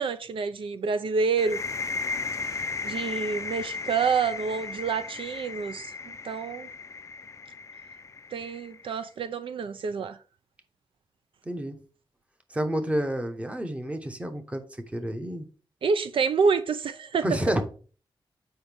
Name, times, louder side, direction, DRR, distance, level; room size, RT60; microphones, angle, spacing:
voice 1, 0.0-1.6 2.8-6.7 8.3-10.2 15.8-17.2, right 5 dB, 70° right, 0.4 m, -28 dB
sound 1, 1.4-8.9, left 4 dB, 35° left, 0.4 m, -35 dB
voice 2, 11.4-11.8 12.5-14.6 14.9-15.5 17.2-17.6, equal, 15° right, 1.0 m, -29 dB
7.8 x 5.1 x 3.4 m
wide cardioid pair, 155°, 9 cm